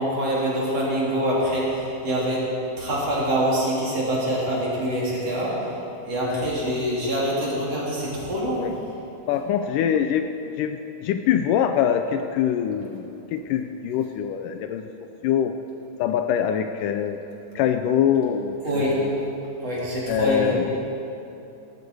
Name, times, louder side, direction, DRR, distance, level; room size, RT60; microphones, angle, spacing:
voice 1, 0.0-2.5 2.8-5.7 6.1-8.7 18.6-19.0 19.6-20.5, equal, 45° right, -6 dB, 4.1 m, -25 dB
voice 2, 6.3-6.7 8.6-8.7 9.3-15.5 16.0-17.2 17.6-19.1 20.1-20.8, left 9 dB, 80° left, 7 dB, 2.0 m, -24 dB
17.5 x 15.0 x 4.7 m, 2.9 s
omnidirectional pair, 4.0 m